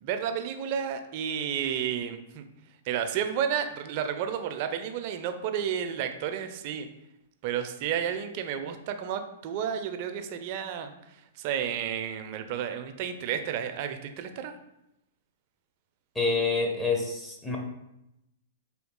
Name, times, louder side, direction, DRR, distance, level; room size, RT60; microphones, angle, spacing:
voice 1, 0.0-2.4 2.9-6.9 7.4-10.9 11.4-14.5, right 8 dB, 50° right, 8 dB, 0.4 m, -31 dB
voice 2, 16.1-17.6, left 4 dB, 10° left, -1 dB, 0.7 m, -27 dB
3.8 x 2.3 x 3.6 m, 0.86 s
hypercardioid pair, 120°, 0 cm